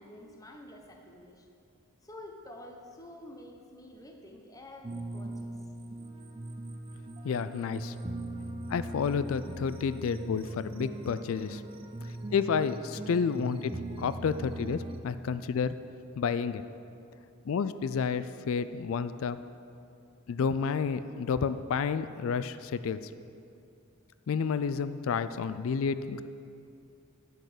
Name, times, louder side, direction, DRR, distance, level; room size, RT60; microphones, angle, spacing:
voice 1, 0.0-1.5 2.0-5.5 7.8-7.9, left 1 dB, 15° left, 2 dB, 0.9 m, -49 dB
sound 1, 4.8-15.0, right 1 dB, 25° right, 0.5 m, -40 dB
voice 2, 7.2-7.9 8.7-11.6 12.0-15.7 16.2-16.6 17.5-19.4 20.3-23.0 24.3-26.2, left 6 dB, 65° left, 13 dB, 0.3 m, -30 dB
11.0 x 6.2 x 6.6 m, 2.6 s
head